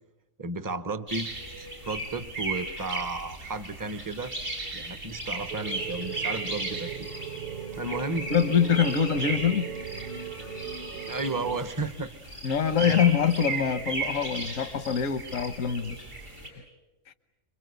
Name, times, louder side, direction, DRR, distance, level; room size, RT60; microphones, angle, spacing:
voice 1, 0.4-1.3 1.6-4.3 4.7-7.1 7.8-8.3 11.1-12.1 12.8-13.0, right 3 dB, 20° right, 12 dB, 0.8 m, -33 dB
sound 1, 1.1-16.5, right 2 dB, 80° right, 7.7 m, -36 dB
sound 2, 5.5-11.7, right 7 dB, 40° right, 1.2 m, -38 dB
voice 2, 8.3-9.6 12.4-16.0 17.1-17.2, left 7 dB, 85° left, 10 dB, 1.5 m, -24 dB
27.5 x 23.5 x 8.2 m, 1.1 s
omnidirectional pair, 1.3 m